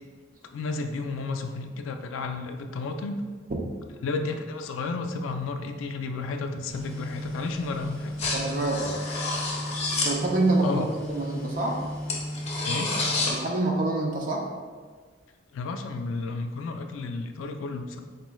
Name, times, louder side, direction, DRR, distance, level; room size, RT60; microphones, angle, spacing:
voice 1, 0.5-3.2 4.0-8.1 10.6-10.9 12.7-12.9 15.5-18.0, left 3 dB, 85° left, 6 dB, 0.3 m, -32 dB
sound 1, 6.7-13.3, left 2 dB, 35° left, 0.7 m, -30 dB
voice 2, 8.3-8.9 10.0-11.8 13.3-14.5, right 2 dB, 45° right, 0 dB, 0.5 m, -26 dB
4.4 x 3.0 x 2.2 m, 1.5 s
head